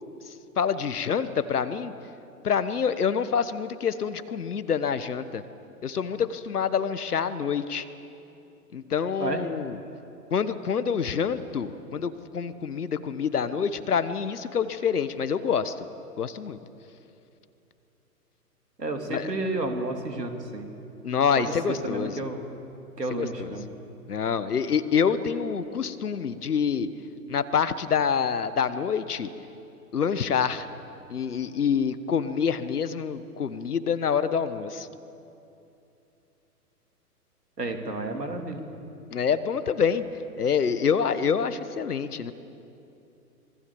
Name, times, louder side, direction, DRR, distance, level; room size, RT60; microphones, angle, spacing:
voice 1, 0.6-1.9 2.4-5.4 5.8-7.8 8.7-9.8 10.3-15.7 16.2-16.6 19.1-19.3 21.0-22.2 23.1-23.5 24.1-26.9 27.3-29.3 29.9-30.7 31.1-34.9 39.1-40.0 40.4-42.3, left 7 dB, 70° left, 13 dB, 1.4 m, -26 dB
voice 2, 18.8-20.7 21.4-22.4 23.0-23.6 37.6-38.6, right 2 dB, 85° right, 4 dB, 3.2 m, -31 dB
26.0 x 21.0 x 7.1 m, 2.8 s
figure-of-eight pair, 115°, 47 cm